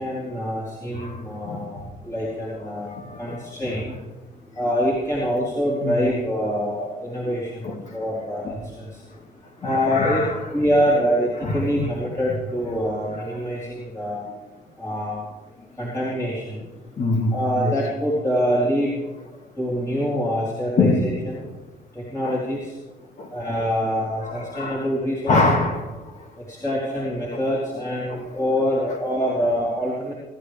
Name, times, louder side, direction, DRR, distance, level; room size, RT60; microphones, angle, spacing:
voice 1, 0.0-2.9 3.2-4.0 4.5-9.0 9.6-10.2 10.5-14.2 14.8-15.2 15.8-16.7 17.3-18.9 19.6-21.5 21.9-22.8 23.3-25.6 26.5-30.1, equal, 20° left, -6 dB, 4.1 m, -25 dB
voice 2, 0.9-1.7 2.8-3.6 5.8-6.2 7.2-8.0 8.4-8.5 9.1-9.2 9.6-10.4 11.4-11.9 17.0-17.7 20.8-21.1 21.3-21.5 22.2-22.4 23.2-23.4 24.0-24.9 25.3-26.3 27.3-27.4 28.1-28.4, left 2 dB, 45° left, 2 dB, 2.3 m, -25 dB
25.5 x 12.5 x 3.5 m, 1.1 s
cardioid pair, 110°, 17 cm